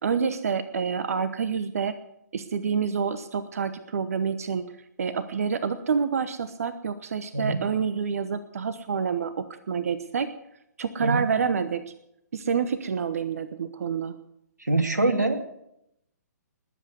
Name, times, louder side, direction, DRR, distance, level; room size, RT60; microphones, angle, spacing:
voice 1, 0.0-1.9 2.3-4.7 5.0-10.3 10.8-11.9 12.3-14.1, right 6 dB, 55° right, 12 dB, 1.0 m, -28 dB
voice 2, 14.6-15.4, right 2 dB, 80° right, 6 dB, 2.6 m, -24 dB
20.5 x 8.3 x 8.1 m, 0.81 s
figure-of-eight pair, 125°, 9 cm